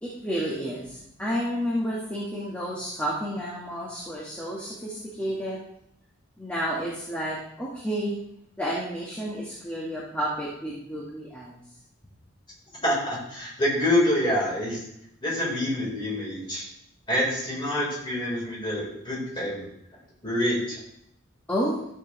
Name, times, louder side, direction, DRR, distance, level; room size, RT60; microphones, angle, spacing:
voice 1, 0.0-5.6 6.4-8.2 8.6-11.6 21.5-21.8, equal, 5° left, -6 dB, 1.5 m, -31 dB
voice 2, 12.8-14.8 15.2-16.6 17.1-19.7 20.2-20.8, left 1 dB, 25° left, -5 dB, 4.2 m, -26 dB
13.0 x 7.2 x 3.2 m, 0.75 s
head